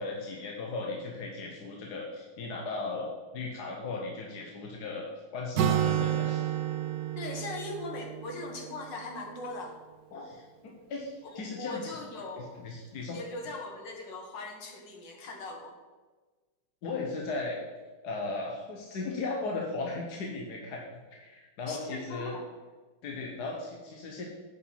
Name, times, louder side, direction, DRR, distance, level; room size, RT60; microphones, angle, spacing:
voice 1, 0.0-5.1 5.3-6.5 10.1-12.0 12.4-13.2 16.8-17.6 18.0-20.8 21.1-22.4 23.0-24.2, left 3 dB, 65° left, -1 dB, 1.5 m, -37 dB
Acoustic guitar, 5.6-9.3, right 10 dB, 75° right, 1.2 m, -30 dB
voice 2, 7.2-9.8 11.3-12.6 13.1-15.7 21.7-22.5, left 2 dB, 85° left, 2 dB, 2.1 m, -40 dB
8.3 x 5.3 x 5.6 m, 1.3 s
omnidirectional pair, 1.9 m